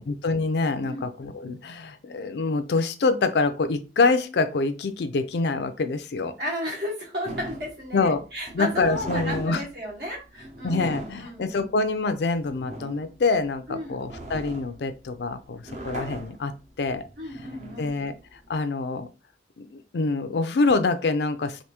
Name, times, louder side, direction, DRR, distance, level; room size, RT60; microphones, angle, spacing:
voice 1, 0.0-6.3 7.9-8.2 8.5-9.6 10.6-16.5 16.8-17.0 17.8-18.1 18.5-19.1 19.6-21.6, left 3 dB, 65° left, 10 dB, 0.4 m, -25 dB
voice 2, 6.4-11.7 13.7-14.0 17.2-17.9, left 1 dB, 65° right, -3 dB, 1.6 m, -34 dB
sound 1, 7.2-18.6, right 2 dB, 40° right, 0.7 m, -39 dB
3.4 x 2.6 x 2.9 m, 0.32 s
head